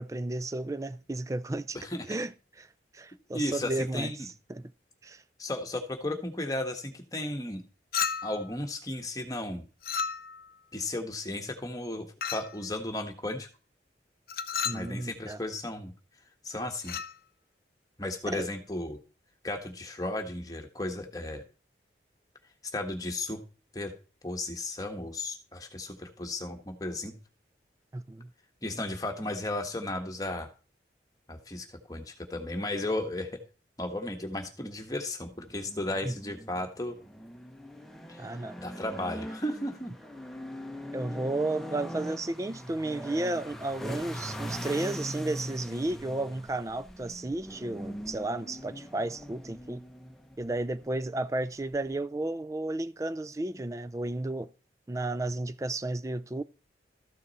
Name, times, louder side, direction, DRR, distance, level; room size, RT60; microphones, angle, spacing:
voice 1, 0.0-1.8 2.1-2.3 2.9-4.1 4.5-4.7 5.0-5.2 14.6-15.4 18.3-18.5 27.9-28.3 36.0-36.1 38.2-38.6 40.9-49.8 50.4-54.5 54.9-56.4, right 2 dB, 15° right, 0.4 m, -33 dB
voice 2, 1.7-2.2 3.3-4.3 5.4-7.6 8.2-9.6 10.7-13.5 14.7-15.9 16.4-17.0 18.0-19.0 19.4-21.4 22.6-23.4 23.7-23.9 24.2-27.2 28.6-30.5 31.3-33.4 33.8-37.0 38.1-39.9, left 1 dB, 20° left, 1.3 m, -34 dB
Chink clink, 7.9-8.5 9.8-10.5 12.2-12.6 14.3-14.9 16.8-17.1, left 7 dB, 55° left, 0.6 m, -32 dB
sound 1, 35.4-52.0, equal, ahead, 1.0 m, -42 dB
13.5 x 6.3 x 4.2 m
head